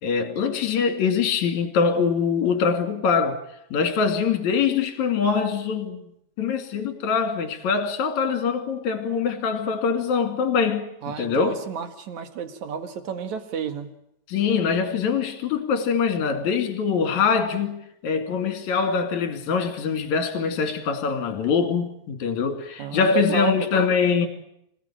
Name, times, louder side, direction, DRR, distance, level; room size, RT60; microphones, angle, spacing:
voice 1, 0.0-3.4 3.7-6.0 6.4-11.6 14.3-24.3, left 6 dB, 50° left, 3.5 m, -23 dB
voice 2, 11.0-13.9 22.8-23.9, right 7 dB, 50° right, 2.6 m, -31 dB
26.0 x 17.5 x 8.9 m
omnidirectional pair, 5.0 m